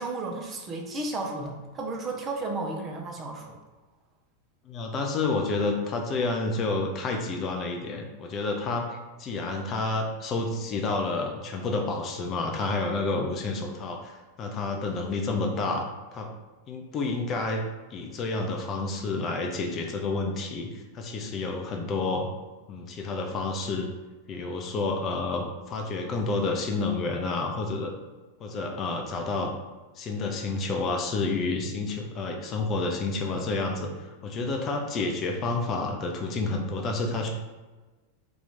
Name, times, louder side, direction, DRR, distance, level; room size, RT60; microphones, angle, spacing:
voice 1, 0.0-3.6, right 2 dB, 25° right, 1 dB, 0.6 m, -33 dB
voice 2, 4.6-16.3 16.7-17.6 17.9-22.3 22.7-23.9 24.3-27.9 28.4-29.5 30.0-37.3, left 3 dB, 30° left, 2 dB, 0.4 m, -29 dB
2.9 x 2.4 x 4.0 m, 1.2 s
figure-of-eight pair, 90°, 0 cm